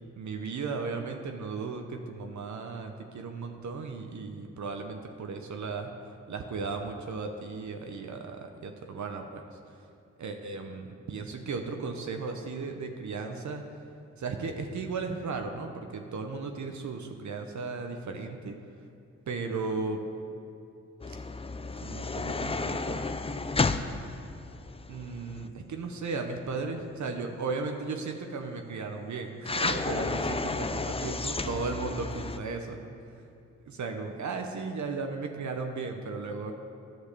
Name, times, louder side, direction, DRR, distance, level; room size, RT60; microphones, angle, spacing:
voice 1, 0.2-5.9 6.3-9.4 10.2-13.6 14.2-18.5 19.3-20.0 21.8-23.1 24.9-33.0 33.7-36.5, right 4 dB, 65° right, 4 dB, 0.9 m, -35 dB
sound 1, 21.0-25.5 29.4-32.4, left 3 dB, 20° left, 0.5 m, -32 dB
10.0 x 6.3 x 6.7 m, 2.6 s
cardioid pair, 50°, 31 cm